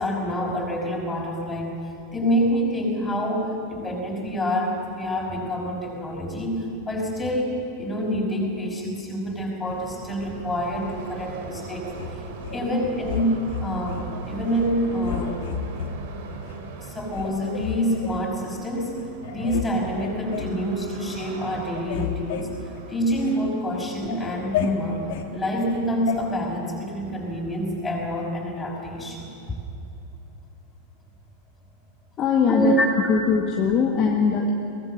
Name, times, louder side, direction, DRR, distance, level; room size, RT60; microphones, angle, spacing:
voice 1, 0.0-1.7 2.1-12.2 12.5-15.4 16.8-18.9 19.3-22.5 22.9-25.0 25.3-29.6 32.5-32.9, equal, 10° left, -2 dB, 5.9 m, -27 dB
sound 1, 9.7-27.7, right 4 dB, 50° right, 2.5 m, -41 dB
sound 2, 11.9-12.6 13.1-14.0 14.4-14.7 15.0-15.9 16.5-16.6 17.1-18.2 18.8-18.9 19.2-19.7 20.0-20.6 21.0-21.3 21.6-23.4 23.8-25.3 26.1-26.2, left 9 dB, 50° left, 1.8 m, -32 dB
voice 2, 32.2-32.8 33.1-34.5, left 6 dB, 30° left, 1 dB, 1.7 m, -21 dB
22.5 x 19.0 x 7.8 m, 2.7 s
figure-of-eight pair, 90°, 0 cm